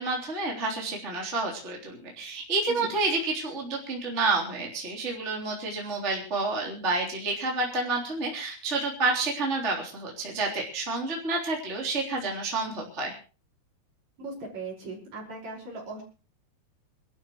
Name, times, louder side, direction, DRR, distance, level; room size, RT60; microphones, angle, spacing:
voice 1, 0.0-13.1, right 3 dB, 15° right, -2 dB, 3.5 m, -29 dB
voice 2, 14.2-16.0, right 2 dB, 45° right, -1 dB, 6.5 m, -38 dB
27.5 x 13.0 x 3.1 m, 0.37 s
omnidirectional pair, 4.7 m